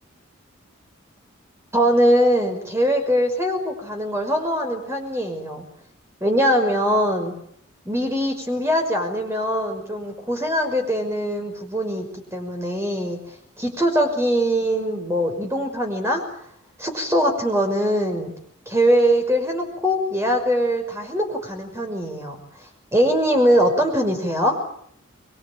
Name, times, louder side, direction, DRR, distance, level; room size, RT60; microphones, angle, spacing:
voice 1, 1.7-5.7 6.2-7.4 7.9-12.0 12.3-13.2 13.6-16.2 16.8-18.3 18.7-22.4 22.9-24.6, equal, 15° right, 4 dB, 5.8 m, -22 dB
24.5 x 23.0 x 8.9 m, 0.69 s
head